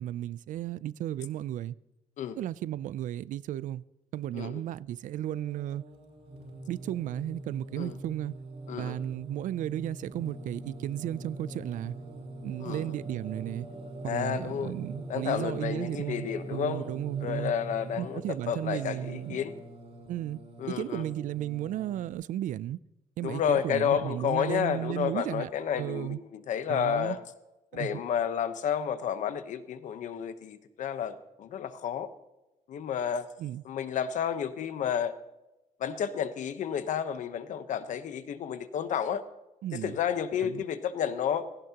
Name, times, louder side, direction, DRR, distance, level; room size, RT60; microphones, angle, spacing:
voice 1, 0.0-1.8 2.4-3.8 4.1-5.8 6.7-8.4 8.7-11.9 12.4-13.7 14.0-17.5 18.0-19.4 20.1-20.4 20.7-22.8 23.2-25.5 25.8-26.2 26.7-27.2 27.7-28.0 33.4-33.6 39.6-40.0 40.4-40.6, right 12 dB, 75° right, 0.4 m, -34 dB
Singing, 5.0-22.1, right 1 dB, 55° right, 3.7 m, -43 dB
voice 2, 14.0-14.7 15.1-16.9 17.2-19.5 20.6-21.1 23.2-27.2 27.7-32.1 32.7-33.3 33.6-35.1 35.8-39.2 39.7-41.5, left 8 dB, 70° left, 1.0 m, -31 dB
17.0 x 16.0 x 2.9 m
wide cardioid pair, 170°, 13 cm